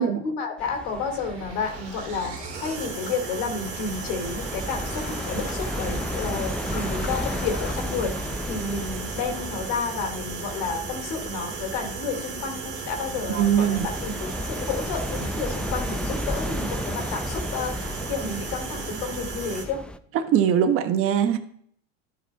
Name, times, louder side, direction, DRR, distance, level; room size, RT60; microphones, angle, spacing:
voice 1, 0.0-14.1 14.4-19.8, left 4 dB, 75° left, 1 dB, 2.5 m, -31 dB
sound 1, 0.6-20.0, left 1 dB, 5° left, 0.4 m, -34 dB
sound 2, 0.7-19.6, right 5 dB, 75° right, 3.0 m, -36 dB
sound 3, 1.6-7.8, left 5 dB, 35° left, 2.0 m, -41 dB
voice 2, 13.3-13.9 20.2-21.4, right 9 dB, 45° right, 7 dB, 1.1 m, -21 dB
12.5 x 4.8 x 4.1 m, 0.63 s
supercardioid pair, 110°, 31 cm